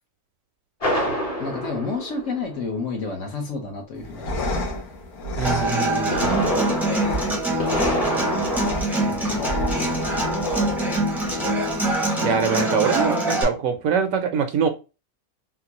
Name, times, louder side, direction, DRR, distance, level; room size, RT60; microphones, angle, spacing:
sound 1, 0.8-2.9 5.8-8.6, equal, 30° left, 0.8 m, -27 dB
voice 1, 1.4-4.6 8.6-10.3, left 4 dB, 60° left, 1.2 m, -32 dB
sound 2, 4.0-11.9, left 1 dB, 80° left, 1.4 m, -31 dB
Human voice / Acoustic guitar, 5.4-13.4, right 1 dB, ahead, 0.5 m, -24 dB
voice 2, 5.4-6.4 12.2-14.7, right 7 dB, 70° right, 0.9 m, -23 dB
3.7 x 2.3 x 2.8 m
omnidirectional pair, 1.5 m